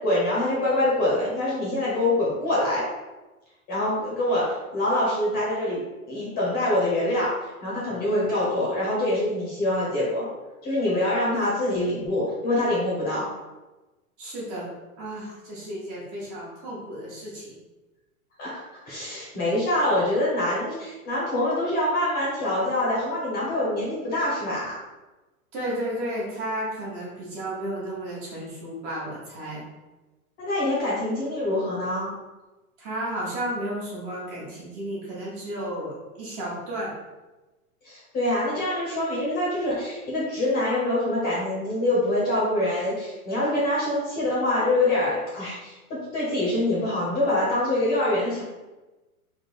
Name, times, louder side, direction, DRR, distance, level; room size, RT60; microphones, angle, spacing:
voice 1, 0.0-2.9 3.7-5.8 6.1-7.3 7.6-10.3 10.6-13.3 18.4-18.6 18.9-24.8 30.4-32.1 37.8-48.4, left 1 dB, 20° left, -6 dB, 1.0 m, -25 dB
voice 2, 14.2-14.7 15.0-17.6 25.5-29.6 32.8-36.9, right 1 dB, 30° right, -6 dB, 1.2 m, -33 dB
3.6 x 2.4 x 4.3 m, 1.1 s
hypercardioid pair, 155°, 44 cm